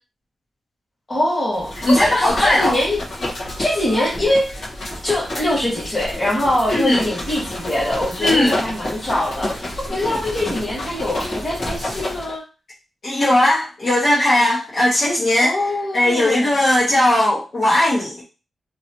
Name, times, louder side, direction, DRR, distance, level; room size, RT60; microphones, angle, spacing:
voice 1, 1.1-3.0 3.6-4.6 5.0-12.4 15.4-16.6, left 1 dB, 25° left, -5 dB, 1.7 m, -23 dB
sound 1, 1.5-12.3, left 1 dB, 70° left, 1.4 m, -29 dB
voice 2, 1.8-2.8 6.7-7.0 8.2-8.6 13.0-15.6 15.9-18.2, left 1 dB, 50° left, -7 dB, 1.5 m, -17 dB
3.0 x 2.9 x 3.0 m, 0.31 s
wide cardioid pair, 115°, 0 cm